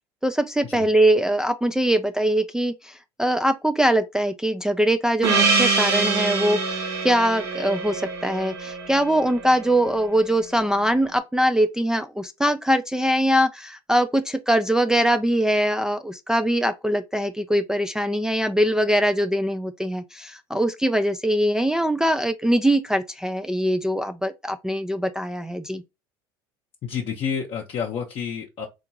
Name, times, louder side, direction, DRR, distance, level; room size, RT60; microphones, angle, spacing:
voice 1, 0.2-25.8, right 1 dB, 5° right, 0.3 m, -22 dB
Gong, 5.2-10.0, right 4 dB, 85° right, 1.0 m, -25 dB
voice 2, 26.8-28.7, left 7 dB, 50° left, 0.7 m, -29 dB
3.6 x 2.4 x 2.7 m
hypercardioid pair, 70°, 13 cm